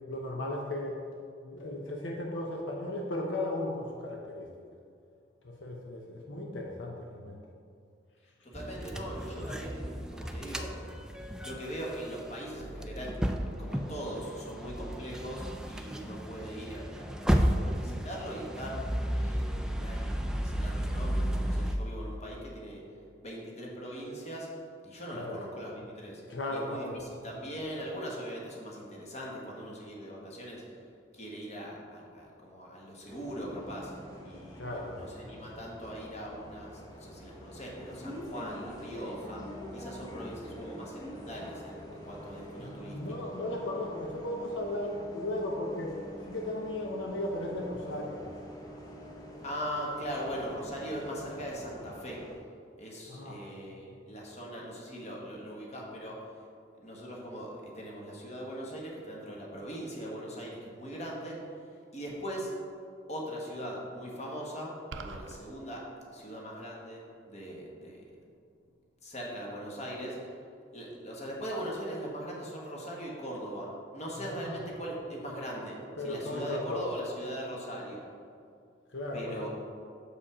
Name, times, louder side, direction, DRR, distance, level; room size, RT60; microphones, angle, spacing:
voice 1, 0.1-1.0 1.4-4.5 5.4-7.4 25.1-25.4 26.3-27.0 34.5-35.1 42.6-46.0 46.2-48.2 53.1-53.4 74.4-74.6 76.0-76.8 78.9-79.5, left 1 dB, 75° left, -1 dB, 0.8 m, -36 dB
voice 2, 8.4-10.7 11.4-13.2 13.6-17.3 17.6-18.8 19.2-22.8 23.2-24.5 24.8-26.2 26.5-30.8 31.1-33.9 34.2-43.3 49.4-52.2 52.8-56.2 56.8-61.4 61.9-62.5 63.1-65.9 66.1-68.0 69.0-70.2 70.7-78.0 79.1-79.5, equal, 35° left, -3 dB, 1.4 m, -40 dB
sound 1, 8.5-21.8, equal, 5° right, 0.3 m, -33 dB
Bus, 33.1-52.4, equal, 20° left, 0.9 m, -46 dB
sound 2, 64.9-65.4, right 4 dB, 75° right, 0.5 m, -41 dB
6.8 x 5.1 x 4.9 m, 2.3 s
head